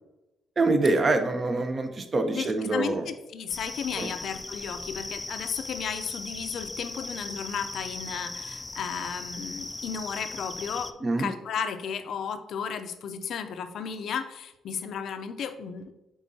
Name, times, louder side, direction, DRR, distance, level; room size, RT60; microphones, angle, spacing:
voice 1, 0.6-3.0 4.0-4.1 11.0-11.3, right 2 dB, 35° right, 6 dB, 0.8 m, -25 dB
voice 2, 2.3-15.9, left 7 dB, 70° left, 9 dB, 0.5 m, -34 dB
sound 1, 3.5-10.9, left 2 dB, 15° left, 0.4 m, -38 dB
9.2 x 3.8 x 2.8 m, 0.98 s
cardioid pair, 90°, 0 cm